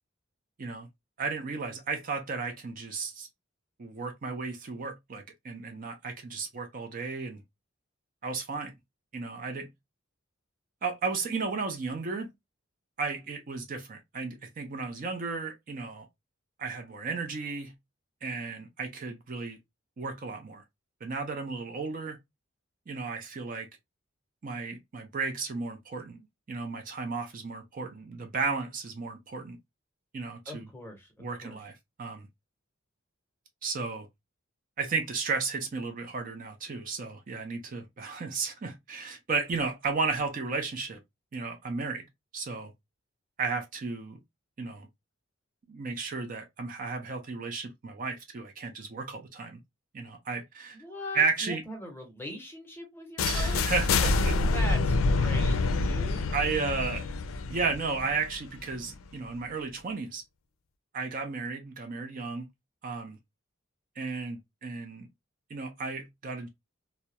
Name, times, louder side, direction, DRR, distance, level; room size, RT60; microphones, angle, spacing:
voice 1, 1.2-3.3 3.8-7.4 8.2-8.7 9.1-9.7 10.8-12.3 13.0-16.1 16.6-17.7 18.2-19.6 20.0-20.6 21.0-22.2 22.9-23.7 24.4-26.2 26.5-29.6 30.1-30.7 31.2-32.3 33.6-34.1 34.8-41.0 41.3-42.1 42.3-42.7 43.4-44.2 44.6-44.9 45.7-49.6 49.9-50.8 51.1-51.6 53.2-54.4 56.3-57.1 57.5-60.2 60.9-62.5 62.8-63.2 64.0-65.1 65.5-66.5, right 4 dB, 40° right, 0.4 m, -34 dB
voice 2, 30.5-31.6 50.7-53.6 54.5-56.3, equal, 10° left, 0.7 m, -41 dB
sound 1, 53.2-59.0, left 3 dB, 90° left, 0.4 m, -27 dB
2.2 x 2.0 x 2.7 m
head